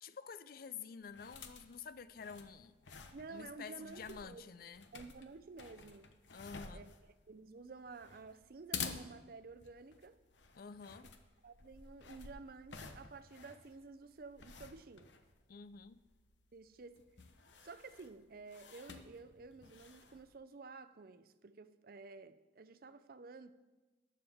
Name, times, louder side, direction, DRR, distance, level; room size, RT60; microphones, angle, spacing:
voice 1, 0.0-2.8 3.3-4.9 6.3-6.9 10.6-11.1 15.5-16.0, left 6 dB, 55° left, 0.4 m, -49 dB
sound 1, 1.0-20.3, left 6 dB, 85° left, 0.9 m, -52 dB
voice 2, 3.1-4.5 4.9-6.1 6.7-6.9 7.3-10.2 11.4-15.1 16.5-17.0 17.6-23.5, right 4 dB, 55° right, 0.5 m, -52 dB
18.5 x 7.3 x 3.5 m
head